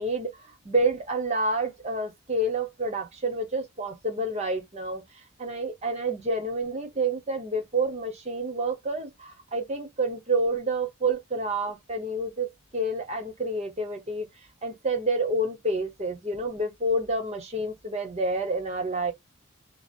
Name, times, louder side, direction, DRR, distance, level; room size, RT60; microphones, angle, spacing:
voice 1, 0.0-5.0 5.4-14.3 14.6-19.1, right 2 dB, 30° right, 0.9 m, -29 dB
2.8 x 2.0 x 2.4 m
head